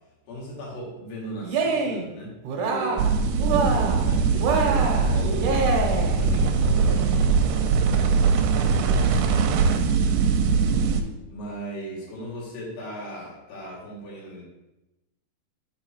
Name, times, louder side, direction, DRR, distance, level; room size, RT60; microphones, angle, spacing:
voice 1, 0.3-3.0 3.5-10.1 11.3-14.4, equal, 85° left, -5 dB, 4.1 m, -38 dB
Cheering, 1.4-2.1 2.4-3.1 3.4-4.1 4.4-6.2, right 4 dB, 70° right, 2.1 m, -25 dB
sound 1, 3.0-11.0, right 5 dB, 85° right, 2.5 m, -21 dB
7.2 x 4.9 x 4.4 m, 0.99 s
omnidirectional pair, 4.5 m